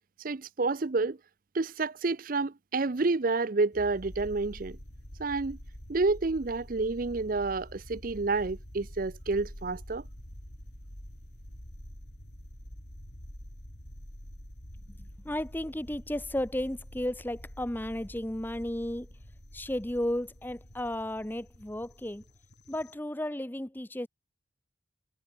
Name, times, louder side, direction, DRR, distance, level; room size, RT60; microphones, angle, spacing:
voice 1, 0.2-1.2 1.5-4.8 5.2-5.6 5.9-10.0, right 3 dB, 45° right, 0.6 m, -29 dB
sound 1, 3.7-22.9, equal, 60° left, 5.7 m, -47 dB
voice 2, 15.2-19.1 19.5-22.2 22.7-24.1, left 1 dB, 10° left, 0.8 m, -33 dB
head